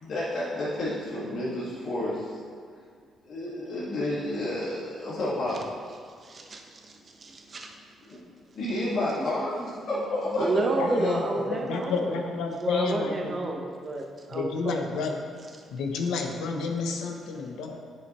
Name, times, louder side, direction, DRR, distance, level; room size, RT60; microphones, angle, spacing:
voice 1, 0.0-2.4 3.2-5.6 8.1-8.2 8.5-11.4, left 1 dB, 65° left, -8 dB, 1.9 m, -30 dB
voice 2, 6.2-7.7 9.2-9.3 9.6-9.7 10.4-12.2 12.6-14.8 15.1-15.2, right 2 dB, 40° right, 1 dB, 1.0 m, -31 dB
voice 3, 10.8-11.2 11.6-13.5 14.3-15.1 15.7-17.8, left 4 dB, 85° left, 3 dB, 0.8 m, -30 dB
9.4 x 5.7 x 3.1 m, 2.1 s
cardioid pair, 90°, 0 cm